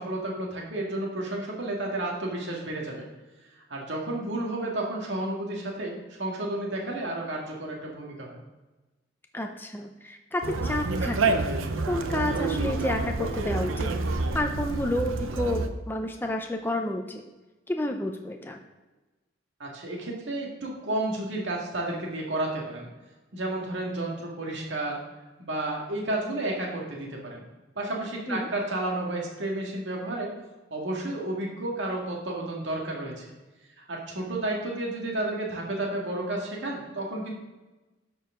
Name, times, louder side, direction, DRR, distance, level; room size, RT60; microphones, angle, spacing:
voice 1, 0.0-3.1 3.6-8.4 19.6-22.9 23.3-25.0 25.4-27.4 27.8-30.3 30.7-33.2 33.8-37.3, right 1 dB, 65° right, -2 dB, 1.9 m, -31 dB
voice 2, 9.3-11.5 11.9-17.2 17.7-18.6 28.3-28.5, left 1 dB, 10° left, 4 dB, 0.5 m, -30 dB
Conversation, 10.4-15.7, right 3 dB, 85° right, 0.7 m, -28 dB
12.0 x 4.7 x 3.7 m, 1.1 s
head